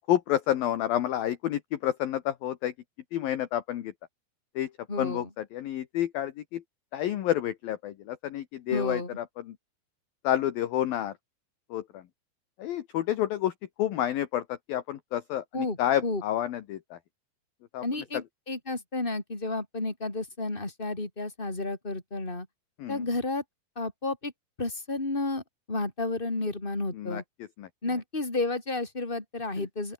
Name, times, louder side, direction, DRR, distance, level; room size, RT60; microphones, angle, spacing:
voice 1, 0.0-2.7 3.1-3.9 4.6-4.7 5.0-5.2 5.5-6.6 6.9-9.2 10.2-11.1 11.7-12.0 12.6-13.5 13.8-14.4 14.7-17.0 17.7-17.8 22.8-23.0 27.0-27.2 27.6-27.7, left 12 dB, 65° left, 2.8 m, -29 dB
voice 2, 4.9-5.3 8.7-9.2 15.5-16.2 17.8-22.5 22.9-23.4 23.8-24.3 24.6-27.2 27.8-29.9, left 2 dB, 10° left, 4.6 m, -32 dB
open air
omnidirectional pair, 5.2 m